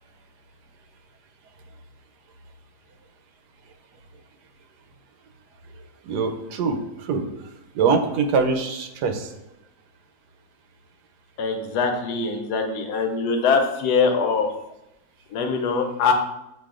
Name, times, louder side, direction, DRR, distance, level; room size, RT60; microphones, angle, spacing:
voice 1, 6.0-7.2 7.7-9.3, right 5 dB, 85° right, 6 dB, 1.2 m, -23 dB
voice 2, 11.4-14.5 15.3-16.1, left 5 dB, 80° left, 5 dB, 1.2 m, -22 dB
7.8 x 2.6 x 2.4 m, 0.91 s
omnidirectional pair, 1.7 m